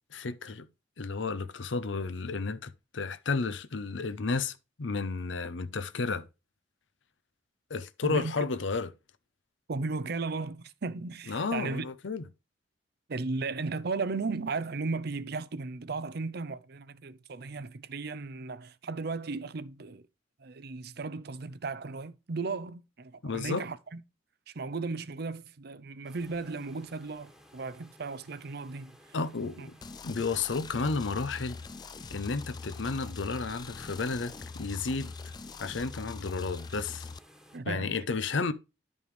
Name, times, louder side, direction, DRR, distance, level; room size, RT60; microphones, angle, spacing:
voice 1, 0.1-0.7 1.0-6.3 7.7-8.9 11.3-12.2 23.2-23.6 29.1-29.8 30.0-31.6 32.1-35.1 35.6-37.1 37.6-38.5, left 4 dB, 80° left, 0.7 m, -32 dB
voice 2, 9.7-11.8 13.1-20.0 20.4-24.0 24.5-29.1 29.6-29.7 37.5-38.0, right 3 dB, 60° right, 0.6 m, -35 dB
sound 1, 26.0-37.6, equal, 5° right, 1.4 m, -57 dB
sound 2, 29.8-37.2, left 4 dB, 20° left, 0.3 m, -43 dB
11.0 x 5.3 x 3.3 m
head